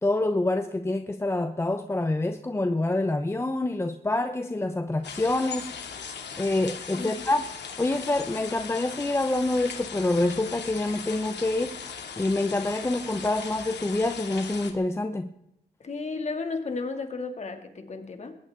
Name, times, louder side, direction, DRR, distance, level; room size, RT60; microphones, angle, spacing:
voice 1, 0.0-5.7 6.4-7.4 7.8-11.8 12.2-15.3, left 2 dB, 15° left, 0.8 m, -26 dB
sound 1, 5.0-14.7, left 6 dB, 85° left, 2.4 m, -39 dB
voice 2, 7.0-7.3 15.8-18.4, left 4 dB, 40° left, 2.4 m, -33 dB
21.0 x 18.5 x 3.7 m
wide cardioid pair, 150°, 17 cm